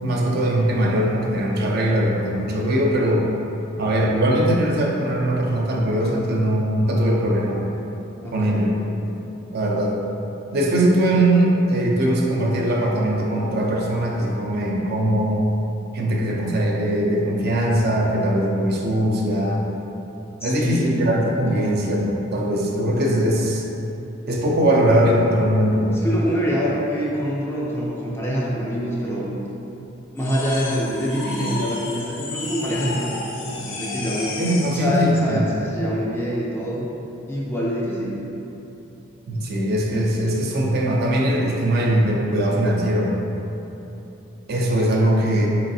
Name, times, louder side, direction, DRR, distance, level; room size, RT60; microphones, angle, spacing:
voice 1, 0.0-3.3 3.8-7.6 8.3-8.7 9.5-10.0 10.5-15.5 15.9-19.6 20.4-23.6 24.3-26.0 34.4-35.5 39.3-43.1 44.5-45.5, right 1 dB, 50° right, -1 dB, 0.4 m, -20 dB
voice 2, 8.2-8.8 20.4-21.1 21.5-21.8 26.0-29.3 30.1-34.3 34.7-36.8 37.3-38.2, equal, 10° left, -5 dB, 0.4 m, -25 dB
sound 1, 30.2-34.9, left 2 dB, 70° left, 0.5 m, -32 dB
4.0 x 2.9 x 2.6 m, 3.0 s
head